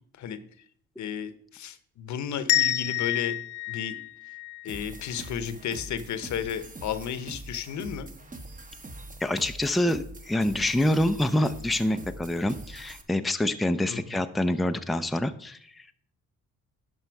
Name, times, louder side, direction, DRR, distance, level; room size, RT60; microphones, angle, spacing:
voice 1, 1.0-3.4 3.7-3.9 4.6-8.1 13.9-14.1, left 8 dB, 70° left, 12 dB, 0.9 m, -33 dB
sound 1, 2.5-5.3, left 15 dB, 90° left, 0.6 m, -28 dB
sound 2, 4.7-13.0, right 2 dB, 25° right, 1.2 m, -43 dB
voice 2, 9.2-15.9, left 1 dB, ahead, 8 dB, 0.5 m, -26 dB
11.5 x 5.4 x 4.6 m, 0.62 s
cardioid pair, 90°, 30 cm